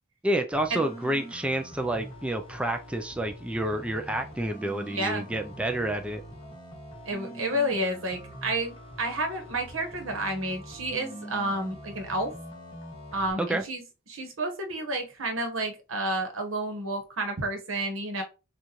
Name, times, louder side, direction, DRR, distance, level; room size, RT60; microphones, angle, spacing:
voice 1, 0.2-6.2 13.4-13.6, right 1 dB, 5° right, 0.4 m, -29 dB
sound 1, 0.5-13.3, equal, 25° left, 1.6 m, -44 dB
voice 2, 4.9-5.3 7.0-12.3 13.1-18.2, right 1 dB, 90° right, 1.2 m, -30 dB
6.3 x 2.5 x 3.0 m
head